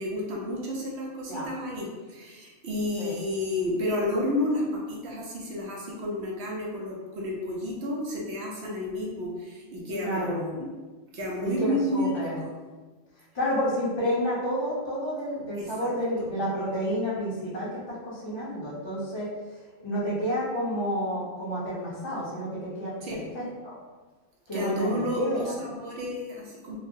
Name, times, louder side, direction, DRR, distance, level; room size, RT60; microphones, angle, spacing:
voice 1, 0.0-10.7 11.1-12.5 15.6-15.9 23.0-23.2 24.5-26.8, left 1 dB, 65° right, -2 dB, 0.8 m, -31 dB
voice 2, 10.0-10.5 11.4-12.3 13.3-19.3 19.8-23.7 24.5-25.5, equal, 25° left, -8 dB, 0.7 m, -30 dB
3.0 x 2.0 x 2.6 m, 1.3 s
omnidirectional pair, 1.3 m